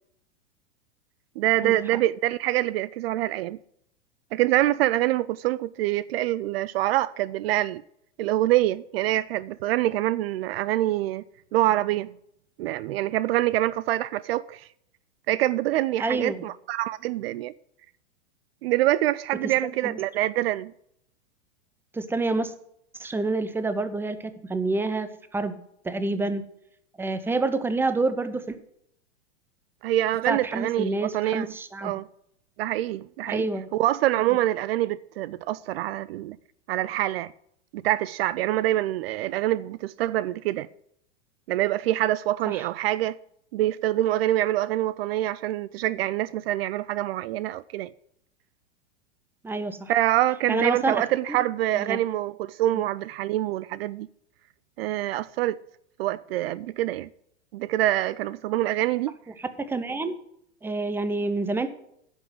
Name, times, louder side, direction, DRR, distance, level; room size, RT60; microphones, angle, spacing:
voice 1, 1.4-3.6 4.3-7.8 8.2-11.2 11.5-12.1 12.6-14.7 15.3-17.5 18.6-20.7 29.8-31.5 31.8-32.1 32.6-33.5 33.7-36.4 36.7-37.3 37.7-40.7 41.5-43.2 43.5-47.9 49.9-54.1 54.8-55.6 56.0-57.1 57.5-59.1, right 14 dB, 60° right, 0.5 m, -25 dB
voice 2, 16.0-16.4 19.4-20.0 21.9-22.5 23.0-25.5 25.8-26.4 27.0-28.6 30.3-31.9 33.3-33.7 42.5-42.7 49.4-49.9 50.5-51.4 51.7-52.0 52.7-52.8 59.4-60.1 60.6-61.7, right 3 dB, 5° right, 0.8 m, -28 dB
10.5 x 6.2 x 7.8 m
hypercardioid pair, 115°, 34 cm